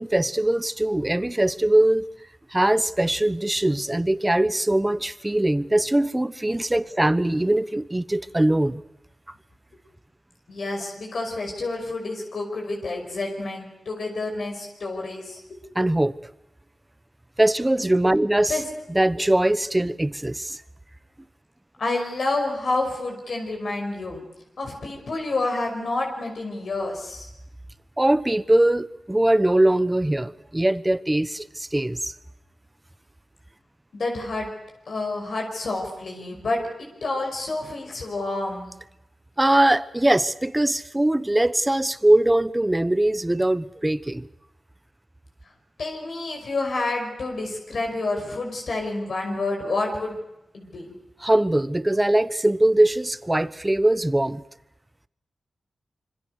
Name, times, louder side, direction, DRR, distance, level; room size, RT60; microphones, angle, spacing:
voice 1, 0.0-2.1 2.5-8.8 15.7-16.2 17.4-18.6 18.9-20.6 28.0-32.1 39.4-44.3 51.2-54.4, right 1 dB, 15° right, 15 dB, 1.1 m, -21 dB
voice 2, 10.5-15.6 18.5-18.6 21.8-24.2 24.6-27.3 33.9-34.5 34.9-38.7 45.8-50.2 50.5-50.9, left 2 dB, 70° left, 1 dB, 5.5 m, -29 dB
26.0 x 25.0 x 6.6 m, 0.89 s
cardioid pair, 75°, 0 cm